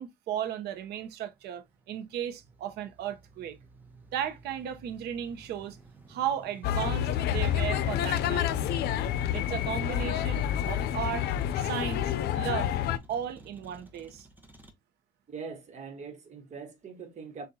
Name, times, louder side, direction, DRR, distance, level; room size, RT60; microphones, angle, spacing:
voice 1, 0.0-3.6 4.1-5.8 6.1-8.5 9.3-11.3 11.5-12.7 13.1-14.3, right 9 dB, 80° right, 0.9 m, -35 dB
Motor vehicle (road), 0.7-14.7, right 2 dB, 10° right, 1.0 m, -50 dB
sound 1, 6.6-13.0, left 10 dB, 70° left, 0.5 m, -28 dB
voice 2, 15.3-17.5, right 5 dB, 45° right, 1.3 m, -42 dB
6.4 x 2.5 x 2.8 m
cardioid pair, 110°, 17 cm